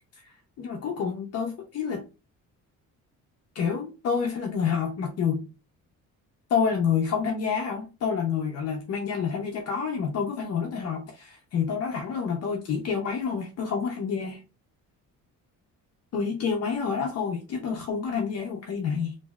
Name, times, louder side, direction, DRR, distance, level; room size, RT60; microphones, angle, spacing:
voice 1, 0.2-2.0 3.5-5.5 6.5-14.4 16.1-19.2, left 6 dB, 50° left, 0.6 m, -28 dB
3.1 x 2.6 x 2.3 m
cardioid pair, 140°, 33 cm